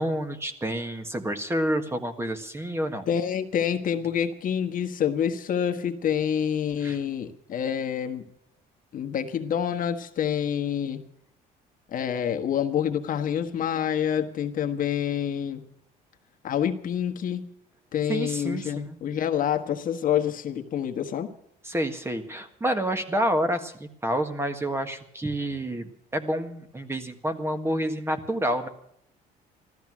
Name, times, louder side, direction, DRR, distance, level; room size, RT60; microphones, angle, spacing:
voice 1, 0.0-3.1 6.8-7.0 18.1-19.0 21.6-28.7, right 1 dB, 15° right, 7 dB, 1.6 m, -28 dB
voice 2, 3.1-8.2 8.9-11.0 11.9-15.6 16.4-17.5 17.9-21.3, left 9 dB, 55° left, 6 dB, 1.4 m, -27 dB
15.0 x 13.5 x 6.1 m, 0.72 s
cardioid pair, 110°, 17 cm